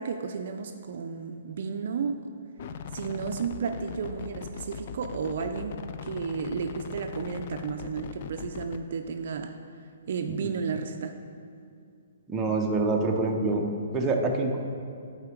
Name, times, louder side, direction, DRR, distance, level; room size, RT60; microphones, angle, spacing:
voice 1, 0.0-2.2 2.9-9.5 10.1-11.2, right 5 dB, 55° right, 6 dB, 0.4 m, -33 dB
sound 1, 2.6-8.8, left 7 dB, 45° left, 0.3 m, -40 dB
voice 2, 12.3-13.6 13.9-14.6, right 3 dB, 15° right, 0 dB, 0.6 m, -26 dB
8.6 x 4.2 x 4.5 m, 2.4 s
hypercardioid pair, 155°, 0 cm